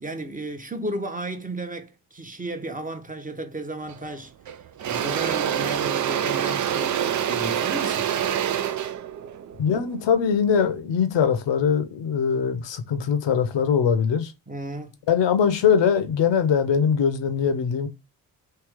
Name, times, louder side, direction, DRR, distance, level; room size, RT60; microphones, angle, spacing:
voice 1, 0.0-4.3 4.8-8.3 14.5-14.9, right 1 dB, 15° right, 0.9 m, -33 dB
Engine / Drill, 3.9-4.1 4.5-10.6, right 9 dB, 40° right, 0.5 m, -26 dB
voice 2, 9.6-14.3 15.1-17.9, left 7 dB, 60° left, 0.9 m, -22 dB
3.4 x 2.7 x 3.6 m
hypercardioid pair, 40°, 49 cm